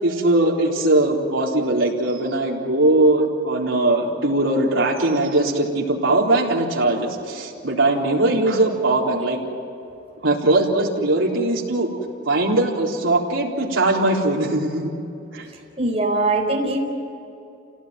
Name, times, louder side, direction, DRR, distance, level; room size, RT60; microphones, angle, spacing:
voice 1, 0.0-9.4 10.2-11.9 12.3-14.9 15.3-15.5, right 2 dB, 80° right, -2 dB, 3.9 m, -20 dB
voice 2, 15.8-16.8, right 2 dB, 30° right, 0 dB, 4.4 m, -21 dB
29.0 x 17.5 x 9.4 m, 2.7 s
head